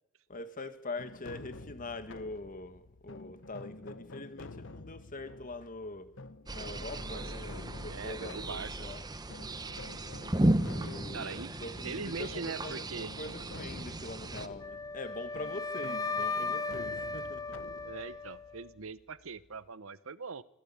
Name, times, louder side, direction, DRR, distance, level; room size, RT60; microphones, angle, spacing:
voice 1, 0.3-6.1 6.5-9.1 10.7-17.6, left 2 dB, 40° left, 1.8 m, -43 dB
sound 1, 1.0-19.7, left 3 dB, 65° left, 1.0 m, -49 dB
sound 2, 6.5-14.5, right 1 dB, 20° right, 1.1 m, -35 dB
voice 2, 7.8-8.7 11.1-11.5 11.8-13.1 17.8-20.4, right 4 dB, 70° right, 0.9 m, -41 dB
Wind instrument woodwind instrument, 14.6-18.7, left 3 dB, 15° left, 0.8 m, -36 dB
26.5 x 15.0 x 8.7 m
head